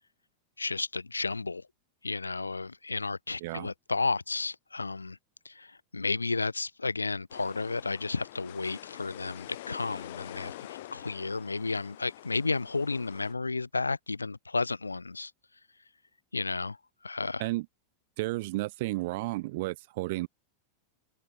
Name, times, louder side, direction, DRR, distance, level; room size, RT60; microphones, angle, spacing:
voice 1, 0.6-1.7 2.0-5.2 5.4-10.5 10.9-15.3 16.3-16.8 17.0-17.5, left 3 dB, 80° left, 2.3 m, -32 dB
sound 1, 7.3-13.3, left 16 dB, 55° left, 1.6 m, -46 dB
voice 2, 18.2-20.3, right 20 dB, 50° right, 2.9 m, -32 dB
figure-of-eight pair, 90°, 0 cm